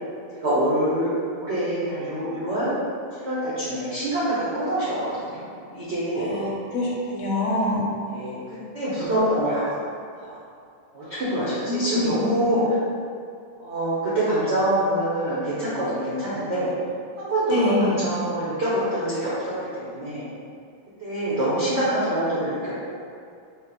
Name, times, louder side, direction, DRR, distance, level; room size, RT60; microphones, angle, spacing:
voice 1, 0.4-2.7 3.2-5.5 5.7-6.3 8.1-8.4 8.7-9.7 10.2-10.3 10.9-12.7 13.6-16.7 17.2-20.3 21.0-22.9, right 1 dB, 85° right, -11 dB, 0.5 m, -25 dB
voice 2, 6.2-7.9 11.4-12.2 17.5-18.0, left 2 dB, 80° left, -3 dB, 1.6 m, -25 dB
4.1 x 2.1 x 3.9 m, 2.4 s
omnidirectional pair, 2.4 m